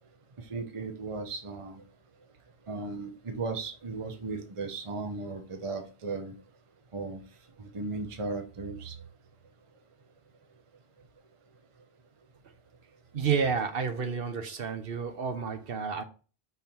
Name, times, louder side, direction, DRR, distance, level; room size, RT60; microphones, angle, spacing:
voice 1, 0.4-1.8 2.7-6.3 6.9-7.2 7.6-9.0, right 3 dB, 35° right, 0.8 m, -36 dB
voice 2, 13.1-16.0, right 6 dB, 65° right, 1.1 m, -30 dB
5.5 x 4.1 x 4.4 m
omnidirectional pair, 1.0 m